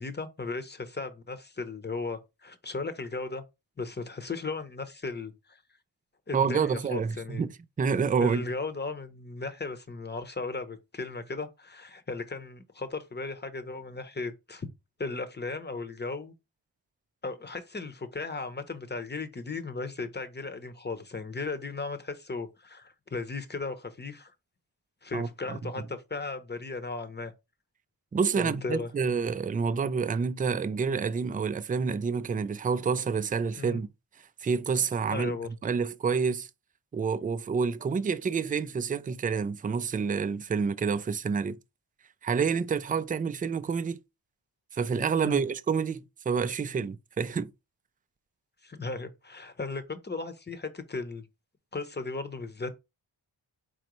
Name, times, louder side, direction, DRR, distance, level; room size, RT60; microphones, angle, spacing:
voice 1, 0.0-3.4 3.8-5.6 6.3-7.4 8.2-14.7 15.0-16.3 17.2-24.3 25.0-27.3 28.4-28.9 33.6-33.8 35.1-35.5 45.2-45.4 48.6-51.3 51.7-52.7, left 3 dB, 20° left, 0.8 m, -36 dB
voice 2, 6.3-7.5 7.8-8.4 25.1-25.6 28.1-33.9 34.4-35.4 35.6-36.5 36.9-41.6 42.2-44.0 44.7-47.5, right 5 dB, 20° right, 0.3 m, -28 dB
4.3 x 3.8 x 3.0 m
cardioid pair, 60°, 46 cm